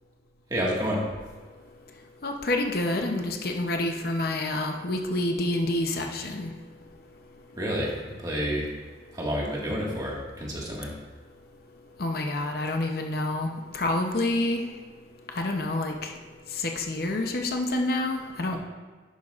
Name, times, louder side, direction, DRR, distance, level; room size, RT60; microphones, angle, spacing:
voice 1, 0.5-1.0 7.5-8.7 9.1-10.9 18.5-18.6, equal, 20° right, -4 dB, 1.7 m, -29 dB
voice 2, 2.2-6.5 12.0-14.6 15.3-16.1 16.5-18.6, left 2 dB, 55° left, 3 dB, 0.7 m, -28 dB
11.0 x 8.2 x 2.4 m, 1.4 s
head